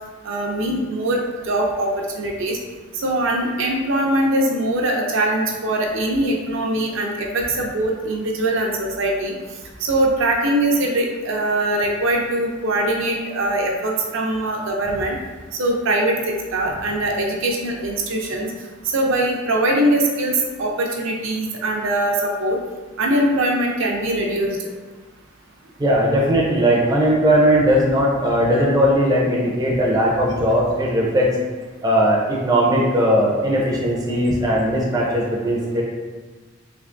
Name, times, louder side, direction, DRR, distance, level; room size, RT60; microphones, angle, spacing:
voice 1, 0.2-2.6 3.0-9.3 9.8-15.2 15.6-18.5 18.9-22.6 23.0-24.7, right 1 dB, 70° right, 0 dB, 0.5 m, -22 dB
voice 2, 25.8-31.3 31.8-35.8, equal, 20° right, -3 dB, 0.5 m, -18 dB
3.4 x 3.1 x 2.5 m, 1.3 s
head